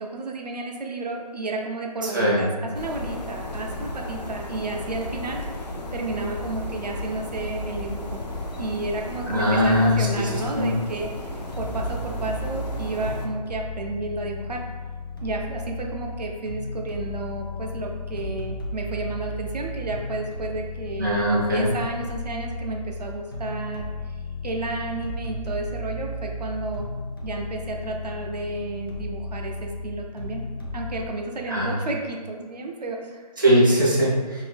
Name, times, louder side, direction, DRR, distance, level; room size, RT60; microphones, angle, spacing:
voice 1, 0.0-2.5 2.7-8.2 8.6-14.6 15.2-24.2 24.4-26.9 27.2-30.4 30.7-33.2, right 3 dB, 75° right, 1 dB, 0.6 m, -32 dB
voice 2, 2.0-2.5 9.3-10.8 21.0-21.7 31.5-31.8 33.4-34.4, equal, 30° right, -6 dB, 0.5 m, -21 dB
sound 1, 2.7-13.3, left 2 dB, 85° left, 0.6 m, -34 dB
sound 2, 11.4-31.1, left 2 dB, 35° left, 0.4 m, -34 dB
2.6 x 2.6 x 3.3 m, 1.4 s
figure-of-eight pair, 175°, 21 cm